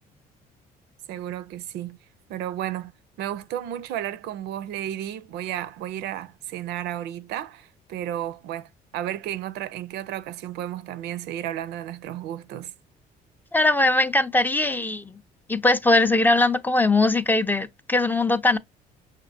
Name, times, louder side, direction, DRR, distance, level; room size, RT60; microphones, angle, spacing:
voice 1, 1.1-2.0 2.3-2.9 3.2-12.7, right 12 dB, 80° right, 0.4 m, -33 dB
voice 2, 13.5-15.2 15.5-18.6, left 2 dB, 10° left, 0.4 m, -21 dB
5.8 x 2.5 x 2.6 m
cardioid pair, 110°, 17 cm